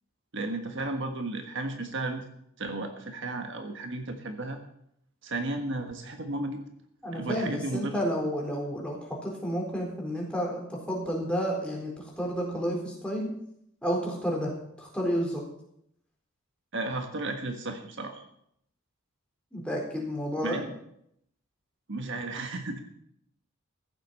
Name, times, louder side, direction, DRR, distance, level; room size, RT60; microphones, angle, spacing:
voice 1, 0.3-2.3 2.6-4.6 5.2-6.6 7.1-8.0 16.7-18.2 20.4-20.7 21.9-22.8, right 2 dB, 60° right, 5 dB, 1.5 m, -34 dB
voice 2, 7.0-13.3 13.8-14.5 14.8-15.4 19.5-20.6, equal, 5° left, -2 dB, 4.2 m, -31 dB
15.0 x 7.8 x 7.6 m, 0.74 s
head